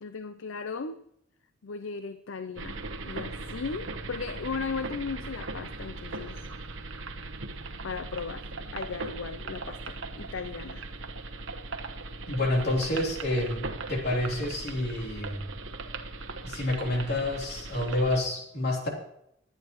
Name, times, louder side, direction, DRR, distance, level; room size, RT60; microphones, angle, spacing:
voice 1, 0.0-1.0 1.6-6.4 7.8-10.9, left 5 dB, 75° left, 11 dB, 0.6 m, -37 dB
sound 1, 2.6-18.2, right 3 dB, 70° right, 1.1 m, -39 dB
voice 2, 12.3-15.4 16.4-18.9, left 1 dB, 55° left, -1 dB, 3.4 m, -28 dB
20.5 x 9.8 x 3.1 m, 0.75 s
head